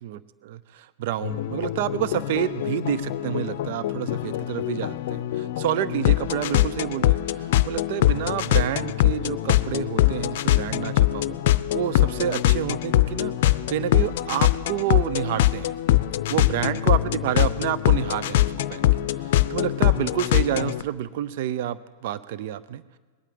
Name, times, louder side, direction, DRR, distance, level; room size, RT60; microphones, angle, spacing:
voice 1, 0.0-11.4 11.7-15.7 16.3-18.9 19.1-22.8, right 11 dB, 60° right, 16 dB, 0.5 m, -29 dB
sound 1, 1.2-20.8, left 14 dB, 60° left, 0.5 m, -23 dB
20.5 x 9.0 x 7.7 m, 1.5 s
hypercardioid pair, 100°, 0 cm